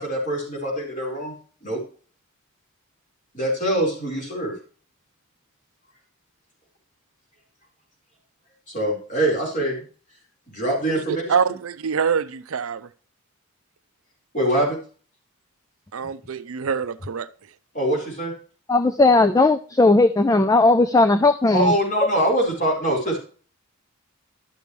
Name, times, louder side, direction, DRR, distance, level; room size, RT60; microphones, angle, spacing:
voice 1, 0.0-1.3 1.6-1.8 3.3-4.6 8.7-9.8 10.5-11.3 14.3-14.8 17.7-18.3 21.5-23.2, right 1 dB, 35° left, 4.3 m, -23 dB
voice 2, 10.9-12.9 15.9-17.3, right 6 dB, 75° right, 0.5 m, -25 dB
voice 3, 18.7-21.7, left 2 dB, 15° left, 0.3 m, -17 dB
12.0 x 6.9 x 3.1 m
head